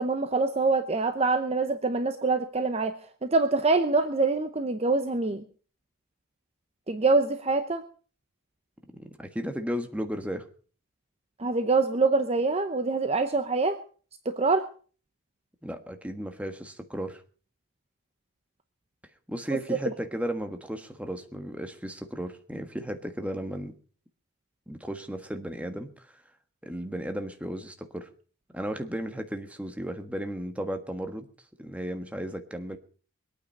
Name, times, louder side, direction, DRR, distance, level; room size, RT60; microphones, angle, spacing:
voice 1, 0.0-2.9 3.2-5.4 6.9-7.8 11.4-13.8 14.2-14.7 19.8-19.9, right 3 dB, 30° right, 9 dB, 0.8 m, -25 dB
voice 2, 9.0-10.5 15.6-17.2 19.3-23.7 24.7-26.2 26.6-28.1 28.5-31.3 31.6-32.8, equal, 5° right, 6 dB, 1.4 m, -35 dB
23.0 x 9.1 x 5.4 m, 0.41 s
head